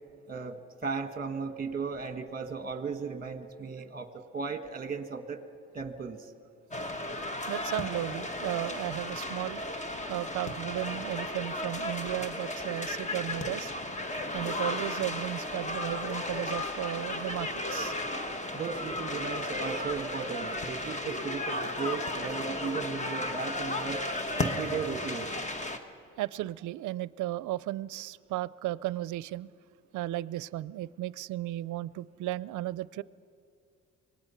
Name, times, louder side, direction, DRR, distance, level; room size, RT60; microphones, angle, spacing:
voice 1, 0.8-5.4 5.7-6.2 18.5-24.0 24.4-25.3, right 5 dB, 30° right, 8 dB, 1.6 m, -36 dB
sound 1, 6.7-25.8, left 1 dB, 25° left, 1.3 m, -34 dB
voice 2, 7.5-9.6 10.1-13.7 14.3-17.9 26.2-29.5 29.9-33.0, right 15 dB, 75° right, 20 dB, 0.5 m, -35 dB
25.5 x 19.0 x 5.8 m, 2.6 s
cardioid pair, 90°, 30 cm